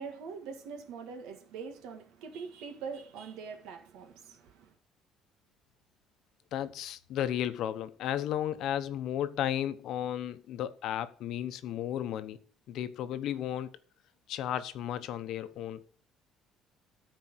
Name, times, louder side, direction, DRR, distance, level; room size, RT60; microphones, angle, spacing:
voice 1, 0.0-4.7, right 5 dB, 90° right, 1.8 m, -43 dB
voice 2, 6.5-12.4 12.7-13.7 14.3-15.8, left 11 dB, 65° left, 0.8 m, -34 dB
13.5 x 4.6 x 6.2 m
cardioid pair, 150°, 0 cm